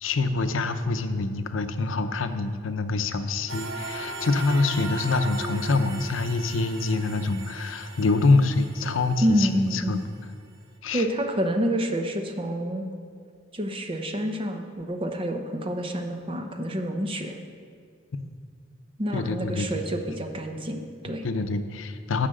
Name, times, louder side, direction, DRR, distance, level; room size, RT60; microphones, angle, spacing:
voice 1, 0.0-10.0 10.8-11.1 18.1-18.2 19.1-19.8 21.1-22.3, left 3 dB, 80° left, 9 dB, 0.6 m, -25 dB
sound 1, 3.5-9.7, right 2 dB, 75° right, 1.0 m, -38 dB
voice 2, 9.2-10.0 10.9-12.9 13.5-17.4 19.0-21.2, equal, 25° right, 5 dB, 0.7 m, -28 dB
10.0 x 5.7 x 7.6 m, 2.2 s
head